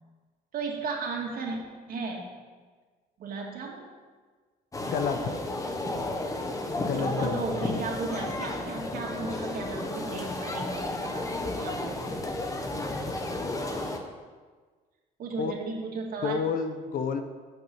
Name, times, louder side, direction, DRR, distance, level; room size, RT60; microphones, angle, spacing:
voice 1, 0.5-1.6 1.9-2.3 3.2-3.9 6.9-12.0 15.2-16.4, right 4 dB, 60° right, -1 dB, 2.4 m, -35 dB
sound 1, 4.7-14.0, left 2 dB, 20° left, 1.2 m, -32 dB
voice 2, 4.8-5.3 6.8-7.8 12.7-12.8 15.4-15.5 16.2-17.2, left 6 dB, 55° left, 9 dB, 0.9 m, -30 dB
8.7 x 6.1 x 8.1 m, 1.5 s
cardioid pair, 110°, 17 cm